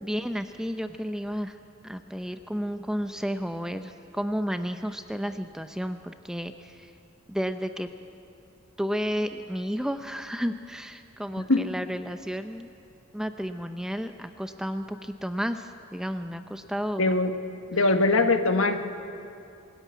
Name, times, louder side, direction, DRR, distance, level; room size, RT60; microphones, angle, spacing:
voice 1, 0.0-1.6 1.8-6.9 7.3-7.9 8.8-12.7 13.1-17.1, equal, 5° right, 8 dB, 0.6 m, -32 dB
voice 2, 17.0-17.3 17.7-18.8, left 2 dB, 80° left, 7 dB, 1.4 m, -21 dB
22.0 x 14.0 x 9.4 m, 2.5 s
head